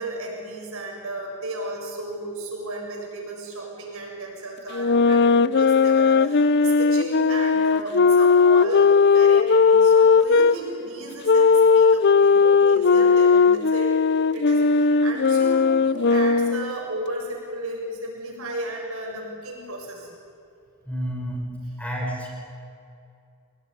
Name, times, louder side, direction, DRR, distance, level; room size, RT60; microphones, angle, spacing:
voice 1, 0.0-14.0 14.3-20.1, right 1 dB, 65° right, 0 dB, 7.4 m, -34 dB
sound 1, 4.7-10.6 11.3-16.7, left 5 dB, 50° left, 0.6 m, -17 dB
voice 2, 20.9-21.4 21.8-22.3, equal, 5° left, -2 dB, 5.5 m, -29 dB
26.0 x 19.5 x 9.9 m, 2.6 s
head